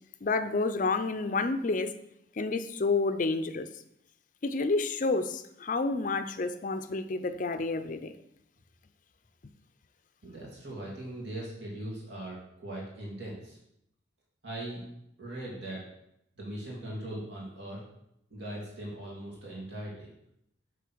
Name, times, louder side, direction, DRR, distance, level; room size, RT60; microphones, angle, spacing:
voice 1, 0.2-1.9 2.4-3.7 4.4-8.1, left 3 dB, 40° left, 10 dB, 0.5 m, -29 dB
voice 2, 10.2-13.6 14.4-14.8 15.2-15.8 16.4-17.8 18.3-20.1, right 1 dB, 70° right, -4 dB, 2.7 m, -40 dB
8.2 x 3.8 x 6.1 m, 0.78 s
head